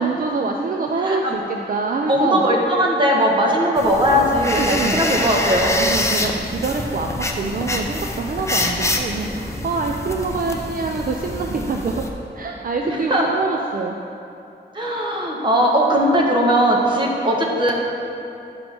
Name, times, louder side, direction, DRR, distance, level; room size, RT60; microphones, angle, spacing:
voice 1, 0.0-2.5 4.6-5.0 5.8-12.0 12.3-14.0, right 4 dB, 50° right, 2 dB, 0.5 m, -25 dB
voice 2, 1.0-1.4 2.1-5.8 12.8-13.2 14.7-17.7, equal, 25° right, -2 dB, 1.4 m, -19 dB
sound 1, 3.8-12.1, left 1 dB, 15° left, 0.7 m, -26 dB
10.5 x 5.2 x 6.0 m, 2.8 s
wide cardioid pair, 150°, 18 cm